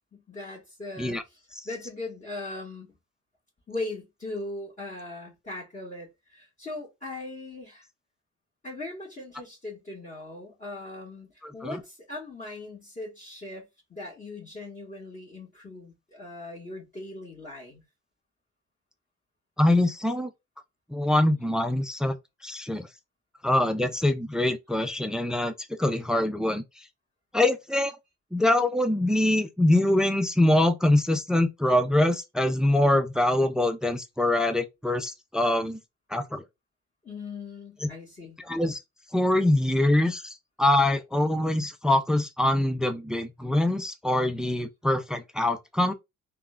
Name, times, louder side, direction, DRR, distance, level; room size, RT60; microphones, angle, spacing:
voice 1, 0.1-1.2 1.6-2.9 3.7-7.9 8.6-17.8 37.0-38.4, left 2 dB, 25° left, 1.6 m, -39 dB
voice 2, 11.4-11.8 19.6-20.3 20.9-22.2 22.4-22.9 23.4-25.5 25.8-26.9 27.3-27.9 28.3-35.8 36.1-36.4 38.4-38.8 39.1-45.9, left 1 dB, ahead, 0.3 m, -24 dB
3.5 x 2.2 x 2.4 m
cardioid pair, 90°, 30 cm